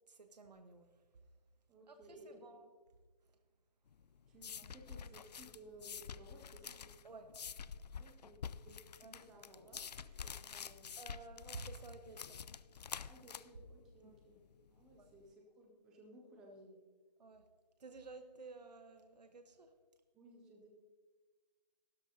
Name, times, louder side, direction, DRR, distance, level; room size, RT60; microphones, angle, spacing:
voice 1, 0.1-0.9 1.9-2.7 7.0-7.4 9.0-9.2 11.0-12.4 14.0-14.2 14.9-15.1 17.2-17.5 17.8-19.7, right 3 dB, 75° right, 7 dB, 1.2 m, -53 dB
voice 2, 1.7-2.4 4.3-6.9 8.0-10.8 13.1-14.4 14.7-16.8 20.1-20.7, right 1 dB, 5° right, 0 dB, 0.3 m, -59 dB
sound 1, 3.9-15.2, left 7 dB, 75° left, 0.5 m, -49 dB
15.0 x 12.5 x 2.8 m, 1.5 s
hypercardioid pair, 155°, 21 cm